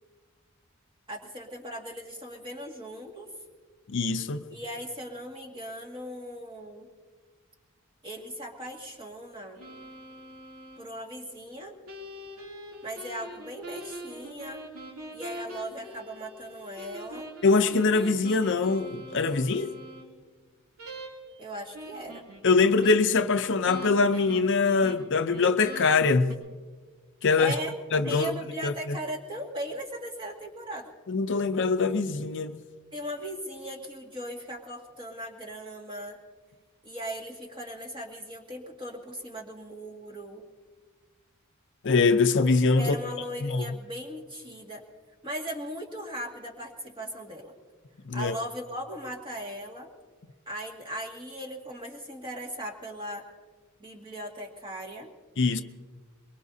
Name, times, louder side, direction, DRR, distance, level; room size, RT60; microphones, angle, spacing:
voice 1, 1.1-3.3 4.5-6.9 8.0-9.6 10.8-11.7 12.8-14.6 15.1-17.3 21.4-22.2 27.4-27.7 28.0-30.9 32.9-36.2 36.8-40.5 42.8-44.8 45.2-47.5 48.1-49.9 50.5-53.2 53.8-55.1, equal, 20° right, 2.0 m, -38 dB
voice 2, 3.9-4.4 17.4-19.7 22.4-26.4 27.2-27.5 27.9-28.3 28.6-28.7 31.1-32.6 41.8-42.9 43.4-43.6 48.1-48.4 55.4-55.6, left 4 dB, 55° left, 0.6 m, -23 dB
sound 1, 9.6-10.8 11.9-20.0 20.8-21.4 21.7-26.3, right 1 dB, 75° right, 2.9 m, -43 dB
23.5 x 22.5 x 2.7 m
head